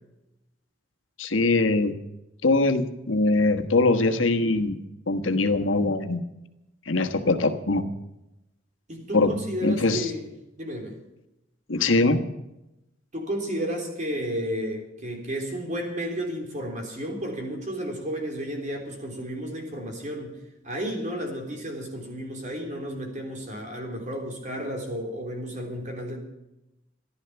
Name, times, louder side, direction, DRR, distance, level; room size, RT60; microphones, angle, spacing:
voice 1, 1.2-1.9 2.4-4.8 5.1-6.2 6.9-7.8 9.1-9.3 9.6-10.1 11.7-12.2, left 2 dB, 85° left, 6 dB, 1.3 m, -22 dB
voice 2, 8.9-10.3 10.6-10.9 13.1-20.4 20.6-26.2, equal, 40° right, 2 dB, 3.6 m, -32 dB
14.5 x 12.0 x 7.0 m, 0.93 s
head